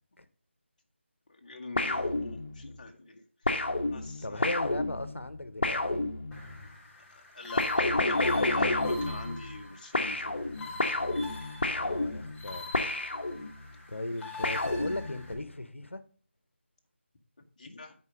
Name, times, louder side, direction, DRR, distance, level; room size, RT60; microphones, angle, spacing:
voice 1, 1.3-3.2 3.9-4.5 7.1-10.4 17.6-17.9, left 3 dB, 40° left, 1.3 m, -43 dB
sound 1, 1.8-2.8 3.5-6.6 7.6-9.7 9.9-13.7 14.4-15.4, left 2 dB, 55° left, 1.2 m, -30 dB
voice 2, 4.2-6.0 11.6-12.7 13.9-16.0, left 2 dB, 75° left, 1.1 m, -37 dB
sound 2, 6.3-15.3, left 3 dB, 5° left, 0.8 m, -46 dB
9.7 x 4.6 x 5.1 m
figure-of-eight pair, 160°, 7 cm